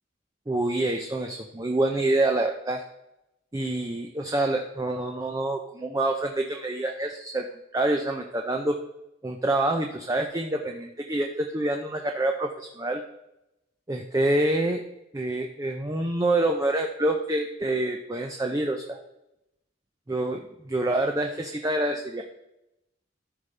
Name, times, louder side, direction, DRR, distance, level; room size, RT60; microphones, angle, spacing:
voice 1, 0.5-2.8 3.5-7.5 7.7-8.8 9.2-13.0 13.9-14.8 15.1-19.0 20.1-22.2, right 2 dB, 20° right, 3 dB, 0.5 m, -27 dB
13.5 x 5.3 x 3.3 m, 0.89 s
head